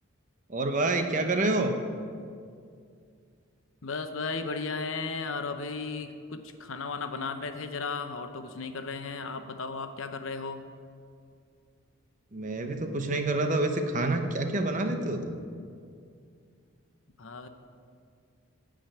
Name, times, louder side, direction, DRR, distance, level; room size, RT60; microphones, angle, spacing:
voice 1, 0.5-1.8 12.3-15.4, right 2 dB, 35° right, 6 dB, 0.9 m, -27 dB
voice 2, 3.8-10.6 17.2-17.5, left 4 dB, 70° left, 8 dB, 0.8 m, -35 dB
15.0 x 5.1 x 8.9 m, 2.3 s
head